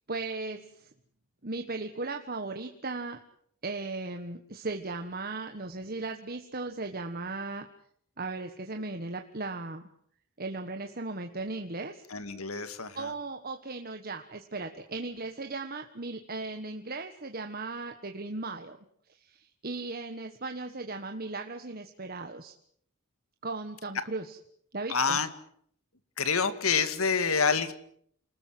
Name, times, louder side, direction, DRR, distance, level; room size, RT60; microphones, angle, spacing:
voice 1, 0.1-0.9 1.4-3.2 3.6-7.7 8.2-9.8 10.4-12.0 12.9-18.8 19.1-22.5 23.4-24.4 24.7-25.2, right 3 dB, 40° right, 6 dB, 1.5 m, -37 dB
voice 2, 12.1-13.1 24.9-25.3 26.2-27.7, left 5 dB, 75° left, 11 dB, 2.2 m, -27 dB
29.5 x 20.0 x 7.7 m, 0.67 s
head